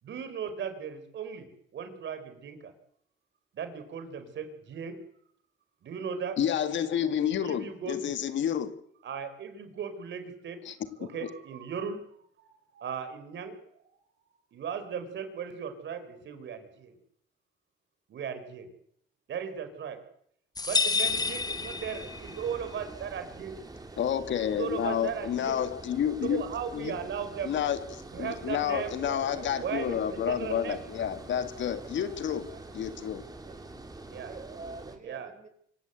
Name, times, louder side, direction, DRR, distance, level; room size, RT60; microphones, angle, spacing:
voice 1, 0.0-2.7 3.5-5.0 5.8-6.3 7.4-8.1 9.0-10.6 11.0-12.0 12.4-13.5 14.5-17.0 18.1-18.7 19.3-20.0 20.6-23.5 24.5-25.6 26.3-27.5 28.1-28.9 29.6-30.8 34.1-34.3 35.0-35.3, right 7 dB, 65° right, 4.3 m, -37 dB
voice 2, 6.4-8.8 10.7-11.3 24.0-26.5 26.7-27.0 27.4-32.5 32.7-33.2, left 9 dB, 70° left, 1.9 m, -30 dB
sound 1, 20.6-22.5, left 4 dB, 20° left, 1.2 m, -29 dB
Water, 21.0-35.0, right 2 dB, 20° right, 3.2 m, -46 dB
voice 3, 28.7-30.8 31.7-33.8 34.2-35.5, right 4 dB, 40° right, 4.7 m, -46 dB
25.5 x 15.5 x 8.2 m
cardioid pair, 90°, 20 cm